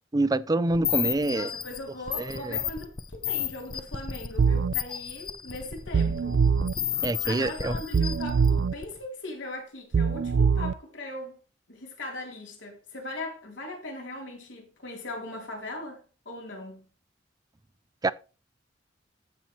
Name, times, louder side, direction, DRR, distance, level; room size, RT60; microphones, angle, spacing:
voice 1, 0.1-1.5 2.2-2.6 7.0-7.7 18.0-18.1, right 2 dB, 20° right, 0.4 m, -26 dB
sound 1, 0.7-9.0, left 8 dB, 25° left, 0.6 m, -33 dB
voice 2, 1.3-6.4 7.2-11.4 11.7-16.9, left 2 dB, 80° left, 3.4 m, -39 dB
sound 2, 4.4-4.7 5.9-6.7 7.9-8.7 9.9-10.7, right 5 dB, 80° right, 0.4 m, -23 dB
14.5 x 5.7 x 3.1 m
head